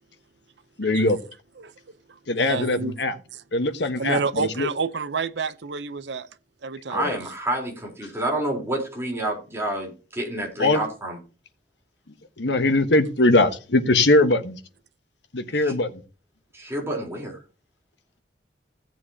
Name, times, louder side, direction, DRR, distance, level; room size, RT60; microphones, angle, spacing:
voice 1, 0.8-1.2 2.3-3.1 3.5-4.7 6.9-7.2 10.6-10.8 12.4-14.6 15.3-16.0, left 2 dB, 80° left, 1.3 m, -21 dB
voice 2, 2.5-2.9 3.3-3.4 4.0-6.3 6.6-7.0, right 4 dB, 85° right, 0.7 m, -29 dB
voice 3, 6.9-11.2 15.6-15.8 16.5-17.4, right 1 dB, 15° right, 3.8 m, -29 dB
16.5 x 7.6 x 2.8 m
head